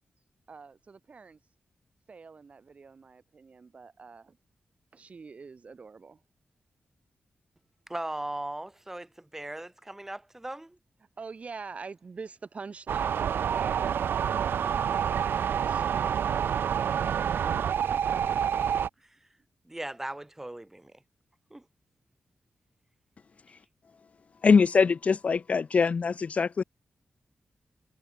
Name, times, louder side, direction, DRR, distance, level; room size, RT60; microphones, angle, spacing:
voice 1, 0.5-1.4 2.1-4.4 4.9-6.2 11.2-17.9, right 4 dB, 40° right, 2.0 m, -46 dB
voice 2, 7.9-10.8 19.0-19.2 19.6-20.9 21.5-21.6, right 1 dB, 10° right, 3.0 m, -38 dB
sound 1, 12.9-18.9, right 8 dB, 80° right, 0.4 m, -28 dB
voice 3, 24.4-26.6, left 5 dB, 40° left, 0.4 m, -23 dB
wide cardioid pair, 180°, 4 cm